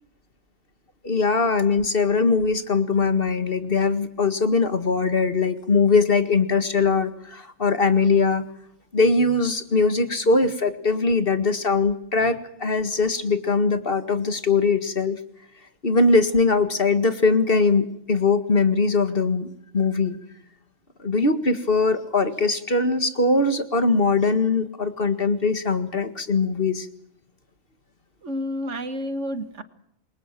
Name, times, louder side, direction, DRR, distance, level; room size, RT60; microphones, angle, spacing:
voice 1, 1.0-8.4 8.9-15.2 15.8-20.2 21.0-26.9, left 4 dB, 50° left, 10 dB, 2.1 m, -21 dB
voice 2, 28.2-29.6, equal, 70° right, 11 dB, 2.0 m, -30 dB
27.5 x 23.0 x 7.6 m, 0.76 s
omnidirectional pair, 1.3 m